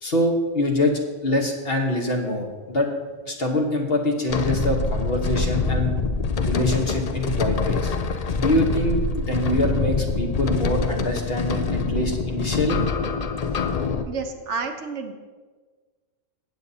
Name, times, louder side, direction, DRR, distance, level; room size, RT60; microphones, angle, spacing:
voice 1, 0.0-3.0 3.3-5.9 6.4-7.9 8.3-12.8, left 1 dB, 50° left, 2 dB, 1.3 m, -24 dB
sound 1, 4.3-14.0, left 4 dB, 70° left, 0.3 m, -25 dB
voice 2, 14.1-15.1, right 5 dB, 65° right, 5 dB, 1.1 m, -30 dB
15.0 x 8.4 x 2.8 m, 1.4 s
omnidirectional pair, 1.4 m